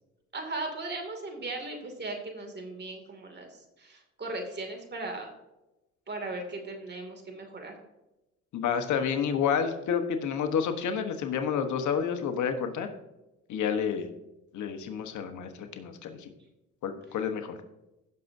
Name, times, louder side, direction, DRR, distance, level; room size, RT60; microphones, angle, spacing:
voice 1, 0.3-3.5 3.8-5.3 6.1-7.8, right 2 dB, 35° right, 4 dB, 2.5 m, -37 dB
voice 2, 8.5-12.9 13.5-14.1 14.5-16.3 16.8-17.6, left 7 dB, 75° left, 7 dB, 1.2 m, -29 dB
16.5 x 6.5 x 2.7 m, 0.97 s
cardioid pair, 90°, 30 cm